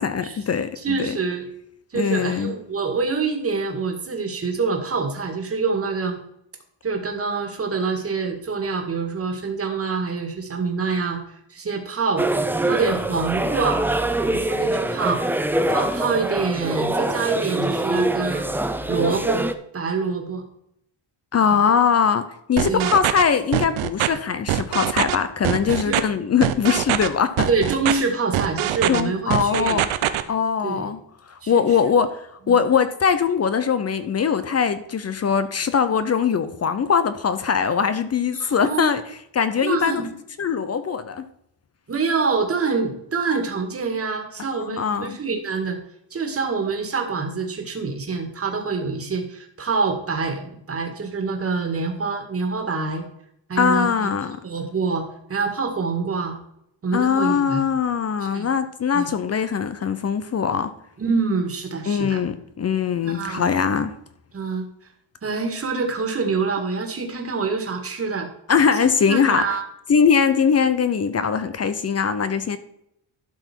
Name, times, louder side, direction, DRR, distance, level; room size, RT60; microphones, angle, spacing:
voice 1, 0.0-1.1 1.9-2.5 21.3-27.5 28.9-29.9 30.3-31.0 31.3-40.0 40.4-41.3 44.5-45.2 53.6-54.4 56.9-60.7 61.9-63.9 68.5-69.5 69.9-72.6, left 6 dB, 30° left, 0.6 m, -21 dB
voice 2, 0.8-1.5 1.9-6.2 6.8-11.2 11.5-12.3 12.6-13.8 14.2-18.5 18.9-19.4 19.7-20.4 22.7-22.9 25.6-26.0 27.5-29.8 30.6-30.8 31.4-31.6 32.5-32.6 38.4-38.9 39.6-40.1 41.9-45.8 46.1-53.0 53.5-54.1 54.4-56.4 56.8-57.7 58.2-58.5 58.9-59.1 61.0-62.2 63.0-63.4 64.3-64.7 65.2-68.3 68.8-69.6, right 4 dB, 30° right, 2.0 m, -26 dB
sound 1, 12.2-19.5, right 1 dB, 5° right, 0.4 m, -24 dB
sound 2, 22.6-23.2 23.5-24.1 24.5-25.2 25.4-26.0 26.4-27.1 27.4-27.9 28.3-29.0 29.3-30.2, right 13 dB, 75° right, 0.9 m, -22 dB
12.0 x 6.0 x 4.5 m
cardioid pair, 140°, 49 cm